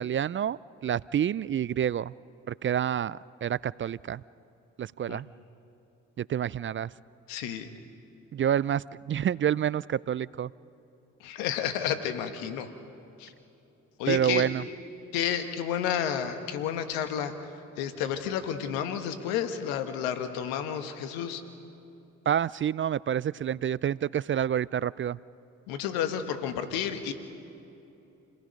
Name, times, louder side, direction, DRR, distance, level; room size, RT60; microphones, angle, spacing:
voice 1, 0.0-2.1 2.5-4.2 4.8-5.3 6.2-6.9 8.3-10.5 14.1-14.7 22.3-25.2, right 9 dB, 35° right, 21 dB, 0.4 m, -28 dB
voice 2, 7.3-7.7 11.2-12.7 13.2-13.3 14.0-14.5 15.1-17.3 17.8-21.4 25.7-27.1, left 9 dB, 90° left, 8 dB, 1.3 m, -31 dB
29.0 x 18.5 x 5.2 m, 2.8 s
hypercardioid pair, 50°, 35 cm